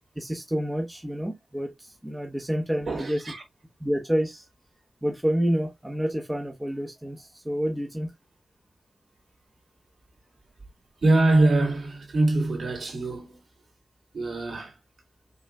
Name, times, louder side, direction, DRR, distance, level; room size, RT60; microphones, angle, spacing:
voice 1, 0.2-3.2 3.8-4.4 5.0-8.1, equal, 10° right, 0.9 m, -28 dB
voice 2, 2.8-3.4 11.0-13.4 14.1-14.8, right 2 dB, 65° right, 3.0 m, -23 dB
5.4 x 4.0 x 2.3 m
wide cardioid pair, 95°, 0 cm